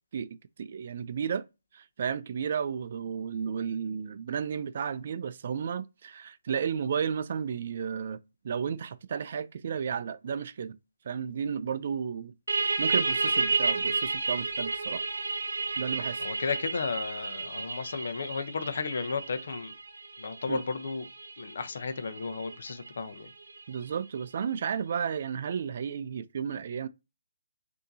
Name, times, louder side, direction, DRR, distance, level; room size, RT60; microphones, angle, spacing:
voice 1, 0.1-1.4 1.7-8.2 8.4-10.8 11.1-12.3 12.8-15.0 15.8-16.3 20.5-20.6 23.7-26.9, right 7 dB, 55° right, 0.3 m, -33 dB
sound 1, 12.5-23.8, right 4 dB, 85° right, 0.8 m, -32 dB
voice 2, 16.2-19.7 20.2-21.1 21.4-23.3, left 4 dB, 65° left, 0.7 m, -34 dB
6.4 x 2.8 x 2.7 m
hypercardioid pair, 150°, 0 cm